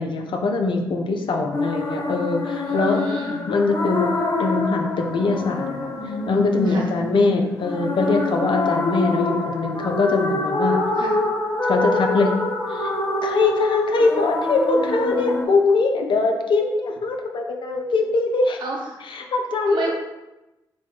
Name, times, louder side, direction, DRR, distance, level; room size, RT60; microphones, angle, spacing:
voice 1, 0.0-3.0 3.5-4.1 4.4-5.9 6.3-10.8 11.6-12.3 12.7-12.9 13.2-18.6 19.0-19.9, left 3 dB, 60° left, 3 dB, 0.6 m, -22 dB
sound 1, 1.5-15.4, left 2 dB, 40° left, 1.2 m, -25 dB
voice 2, 2.6-3.4 6.6-6.9 11.0-11.2 18.6-18.8 19.7-19.9, right 2 dB, 60° right, -1 dB, 1.1 m, -31 dB
4.2 x 2.3 x 4.5 m, 1.0 s
supercardioid pair, 45°, 9 cm